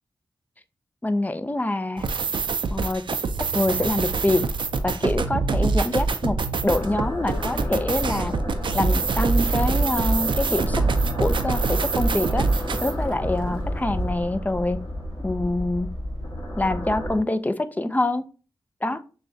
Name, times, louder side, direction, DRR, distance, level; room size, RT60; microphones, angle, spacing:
voice 1, 1.0-2.1 2.7-3.0 3.5-4.4 4.8-6.4 6.6-8.3 8.7-10.8 11.2-12.4 12.8-14.8 15.2-15.9 16.6-18.2 18.8-19.0, left 2 dB, 20° left, 12 dB, 0.4 m, -25 dB
sound 1, 2.0-12.9, right 4 dB, 70° right, 0.4 m, -25 dB
Microwave oven, 6.6-14.1, equal, 80° left, 1.0 m, -38 dB
sound 2, 6.7-17.2, equal, 45° left, 1.6 m, -31 dB
6.4 x 2.2 x 2.6 m, 0.36 s
cardioid pair, 55°, 9 cm